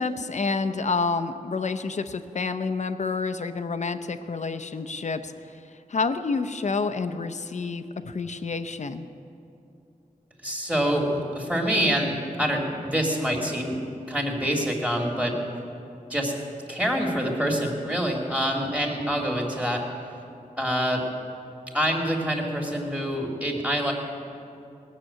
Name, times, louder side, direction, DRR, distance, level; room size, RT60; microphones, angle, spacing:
voice 1, 0.0-5.3 5.9-9.1, left 4 dB, 55° left, 9 dB, 0.7 m, -28 dB
voice 2, 10.4-13.8 14.1-15.4 16.1-16.3 16.7-19.8 20.6-21.0 21.7-23.9, equal, 10° right, 0 dB, 2.4 m, -26 dB
19.5 x 6.8 x 8.7 m, 2.6 s
wide cardioid pair, 110°, 14 cm